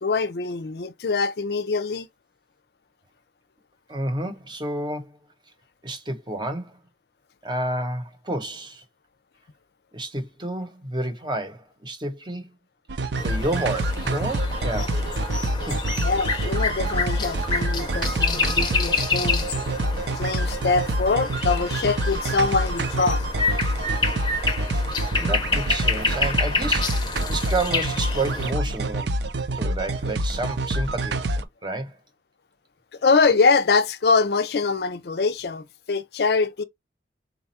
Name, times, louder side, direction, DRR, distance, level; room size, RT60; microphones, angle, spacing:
voice 1, 0.0-2.1 15.9-19.6 20.2-23.3 33.0-36.6, left 4 dB, 65° left, 0.5 m, -23 dB
voice 2, 3.9-5.2 5.8-6.8 7.4-8.8 9.9-12.5 13.2-15.0 15.7-15.8 25.2-29.2 29.5-32.0, right 2 dB, 25° right, 0.8 m, -30 dB
sound 1, 12.9-31.4, right 1 dB, 80° right, 0.5 m, -26 dB
sound 2, 13.2-28.5, left 4 dB, 25° left, 0.6 m, -28 dB
4.1 x 2.3 x 4.1 m
head